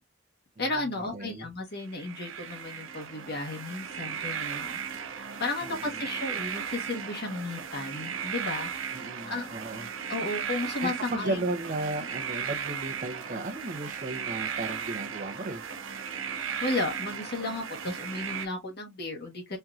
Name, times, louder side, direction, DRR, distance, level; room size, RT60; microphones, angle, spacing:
voice 1, 0.6-4.8 5.4-9.5 10.1-11.4 16.6-19.6, left 2 dB, 55° left, 1.2 m, -34 dB
voice 2, 1.1-1.5 8.9-9.9 10.8-15.7, right 2 dB, 40° right, 0.7 m, -34 dB
sound 1, 1.9-18.5, right 7 dB, 80° right, 0.7 m, -36 dB
4.4 x 2.6 x 2.4 m
head